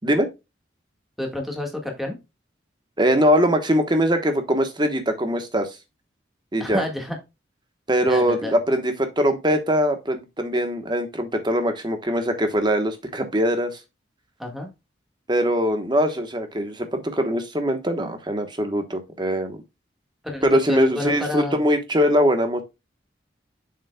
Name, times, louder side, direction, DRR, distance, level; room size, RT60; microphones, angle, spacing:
voice 1, 1.2-2.2 6.6-7.2 8.0-8.6 14.4-14.7 20.2-21.6, left 1 dB, ahead, 1.7 m, -29 dB
voice 2, 3.0-5.7 6.5-6.8 7.9-13.8 15.3-19.6 20.4-22.6, equal, 25° right, 1.1 m, -22 dB
7.3 x 6.8 x 2.3 m
head